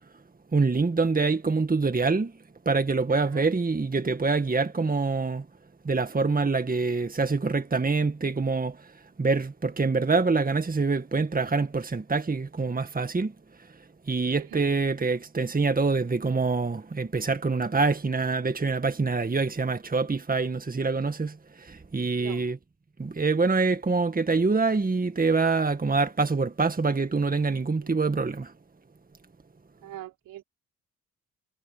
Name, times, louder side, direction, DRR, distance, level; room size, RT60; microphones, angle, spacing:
voice 1, 0.5-2.3 2.7-5.5 5.8-8.8 9.2-13.3 14.1-22.6 23.0-28.5, right 4 dB, 25° right, 1.9 m, -25 dB
voice 2, 3.1-3.5 14.4-14.7 22.2-22.4 27.8-28.0 29.8-30.4, right 13 dB, 80° right, 5.1 m, -42 dB
supercardioid pair, 50°, 32 cm